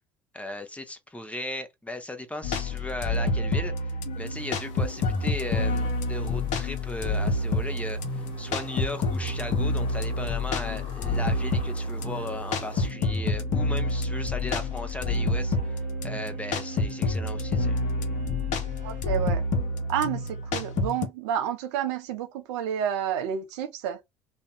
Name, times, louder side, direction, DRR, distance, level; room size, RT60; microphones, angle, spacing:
voice 1, 0.3-3.7 4.1-15.6 16.0-17.8, left 1 dB, 10° left, 0.7 m, -36 dB
sound 1, 2.4-21.1, left 2 dB, 55° left, 0.7 m, -28 dB
sound 2, 4.1-12.9, left 4 dB, 35° left, 1.1 m, -48 dB
sound 3, 6.0-19.0, right 2 dB, 55° right, 0.9 m, -45 dB
voice 2, 18.8-19.4 19.9-24.0, right 9 dB, 70° right, 0.5 m, -30 dB
2.6 x 2.2 x 2.2 m
figure-of-eight pair, 60°, 15 cm